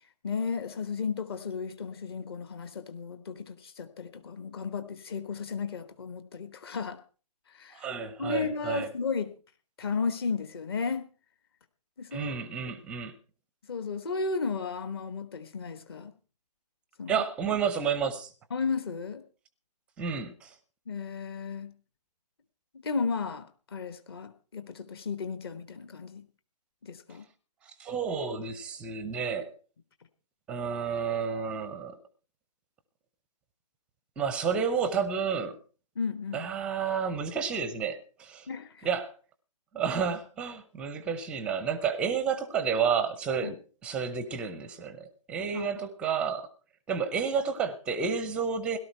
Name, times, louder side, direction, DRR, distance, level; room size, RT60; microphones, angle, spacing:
voice 1, 0.2-7.0 7.5-7.9 8.2-9.3 9.8-11.1 12.0-12.3 12.7-12.8 13.7-16.1 17.0-17.1 18.5-19.2 20.9-21.7 22.7-26.3 26.8-27.3 35.9-36.5 38.5-38.9 43.4-43.5 45.5-45.7, left 5 dB, 35° left, 1.2 m, -34 dB
voice 2, 7.7-8.9 12.1-13.1 17.1-18.3 20.0-20.5 27.8-29.5 30.5-32.0 34.2-35.6 36.3-38.5 38.8-39.1 39.7-46.5 46.9-48.8, right 6 dB, 5° right, 0.6 m, -30 dB
17.5 x 12.0 x 4.4 m
figure-of-eight pair, 145°, 21 cm